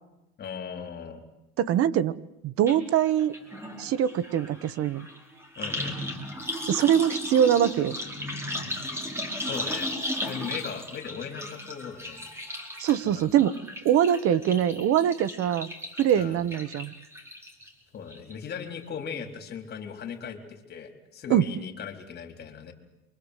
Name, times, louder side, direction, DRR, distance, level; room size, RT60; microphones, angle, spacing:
voice 1, 0.4-1.2 5.6-6.0 9.4-9.9 10.2-12.2 13.0-13.5 16.1-16.4 17.9-22.7, left 7 dB, 30° left, 3 dB, 4.3 m, -38 dB
voice 2, 1.6-2.1 2.4-3.3 3.8-5.1 6.7-8.0 12.8-13.6 13.8-15.7 16.0-16.9 21.3-21.5, right 10 dB, 45° right, 15 dB, 1.2 m, -23 dB
sound 1, 2.7-2.8 3.1-17.7 18.1-18.6 18.8-18.9, left 1 dB, 10° right, 5.0 m, -36 dB
28.5 x 24.5 x 8.3 m, 0.93 s
cardioid pair, 160°, 31 cm